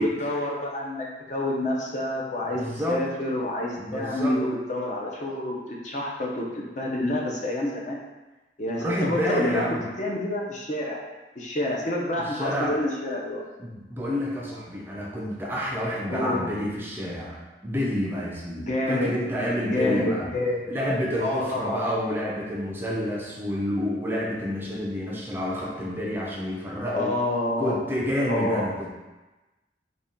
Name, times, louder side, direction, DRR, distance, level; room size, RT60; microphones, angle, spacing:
voice 1, 0.0-8.0 8.6-9.6 10.0-11.0 11.4-13.4 16.1-16.4 18.6-19.1 19.7-20.7 21.2-22.1 26.9-27.8 28.3-28.7, left 1 dB, 45° left, -2 dB, 0.6 m, -28 dB
voice 2, 2.5-3.0 3.8-4.4 8.8-9.9 12.2-12.8 13.6-20.3 20.7-27.1 27.6-28.9, equal, 10° right, -4 dB, 0.4 m, -29 dB
4.0 x 2.2 x 3.6 m, 1.1 s
head